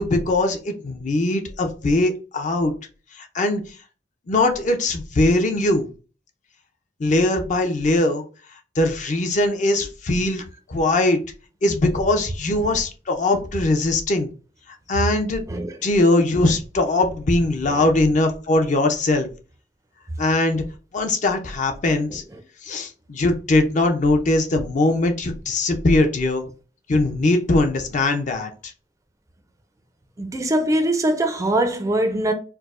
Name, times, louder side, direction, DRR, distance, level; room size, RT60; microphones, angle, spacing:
voice 1, 0.0-2.7 3.1-3.6 4.3-5.9 7.0-8.2 8.8-10.4 10.7-11.2 11.6-14.3 14.9-15.4 15.8-19.3 20.2-20.6 20.9-22.2 22.6-26.5 26.9-28.7, left 2 dB, 45° left, 0.5 m, -21 dB
voice 2, 30.2-32.3, right 1 dB, 20° right, 0.4 m, -22 dB
4.5 x 2.0 x 2.4 m
head